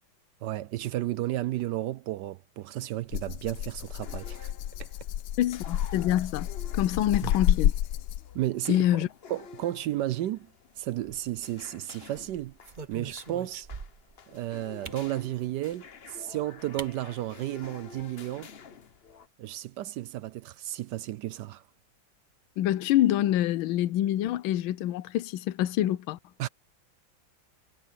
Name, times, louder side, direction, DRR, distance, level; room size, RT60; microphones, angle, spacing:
voice 1, 0.4-4.5 4.8-4.9 7.2-7.3 8.3-10.5 10.8-12.5 12.9-13.7 14.3-18.5 19.4-21.6 26.4-26.5, right 14 dB, 75° right, 1.1 m, -33 dB
Rattle (instrument), 3.1-8.4, left 12 dB, 70° left, 1.1 m, -30 dB
sound 1, 3.7-19.3, left 6 dB, 45° left, 0.9 m, -51 dB
voice 2, 5.4-6.5 6.7-7.7 8.7-9.1 22.6-26.2, left 13 dB, 85° left, 1.5 m, -26 dB
sound 2, 10.9-11.6 12.2-14.2 14.8-15.1 16.2-16.3 16.8-16.9 17.3-17.4 17.6-18.0, right 5 dB, 40° right, 0.7 m, -43 dB
omnidirectional pair, 2.1 m